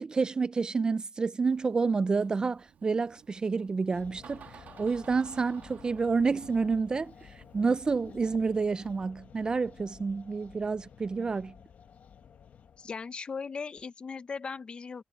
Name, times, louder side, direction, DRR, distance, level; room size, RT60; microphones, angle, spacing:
voice 1, 0.0-11.5, right 4 dB, 30° right, 0.3 m, -29 dB
Door, 1.4-9.1, right 8 dB, 85° right, 2.3 m, -55 dB
sound 1, 3.9-13.1, left 7 dB, 65° left, 1.0 m, -53 dB
voice 2, 12.8-15.0, left 5 dB, 40° left, 0.8 m, -38 dB
wide cardioid pair, 165°, 3 cm